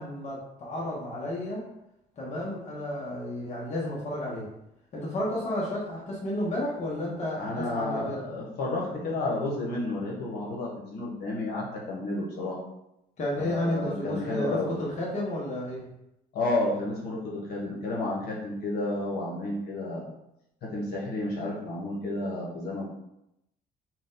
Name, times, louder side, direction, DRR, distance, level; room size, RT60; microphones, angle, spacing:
voice 1, 0.0-1.6 2.2-4.5 4.9-8.3 13.2-15.9, left 1 dB, 45° left, -4 dB, 1.3 m, -32 dB
voice 2, 7.4-12.6 13.4-14.7 16.3-20.0 20.6-22.8, left 2 dB, 70° left, -4 dB, 1.5 m, -31 dB
4.8 x 2.5 x 3.9 m, 0.84 s
cardioid pair, 110°, 17 cm